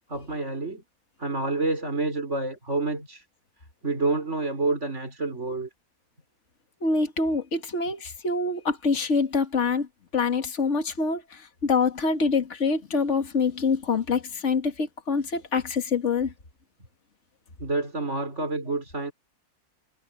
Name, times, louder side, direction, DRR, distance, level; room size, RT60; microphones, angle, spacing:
voice 1, 0.1-0.8 1.2-3.2 3.8-5.7 17.6-19.1, right 3 dB, 45° right, 5.0 m, -28 dB
voice 2, 6.8-9.9 10.1-16.3, left 4 dB, 45° left, 2.3 m, -25 dB
omnidirectional pair, 1.7 m